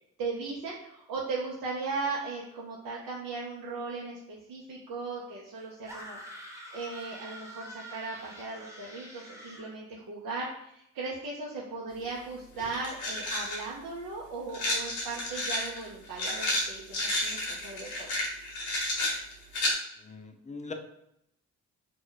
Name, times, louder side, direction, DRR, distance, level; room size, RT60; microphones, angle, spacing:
voice 1, 0.2-6.2 6.7-18.1, right 3 dB, 70° right, -4 dB, 0.7 m, -37 dB
sound 1, 5.9-9.7, right 1 dB, 10° right, 0.9 m, -46 dB
sound 2, 12.1-12.2 12.6-13.6 14.5-19.7, left 1 dB, 75° left, 1.2 m, -31 dB
voice 2, 20.0-20.7, left 4 dB, 20° left, 5 dB, 0.6 m, -41 dB
2.9 x 2.1 x 3.8 m, 0.79 s
hypercardioid pair, 45°, 36 cm